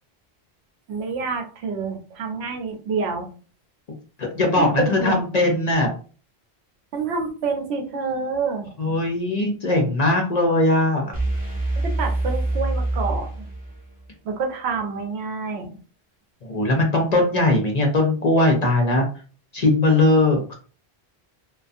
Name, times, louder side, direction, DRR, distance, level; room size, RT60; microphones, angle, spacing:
voice 1, 0.9-3.3 4.6-5.2 6.9-8.7 12.0-13.5 14.2-15.8, right 4 dB, 85° right, 4 dB, 0.9 m, -27 dB
voice 2, 4.2-5.9 8.8-11.2 16.4-19.0 19.5-20.5, left 2 dB, 50° left, 2 dB, 0.5 m, -20 dB
sound 1, 11.1-14.0, right 2 dB, 10° right, 0.6 m, -25 dB
2.5 x 2.3 x 2.5 m, 0.39 s
omnidirectional pair, 1.1 m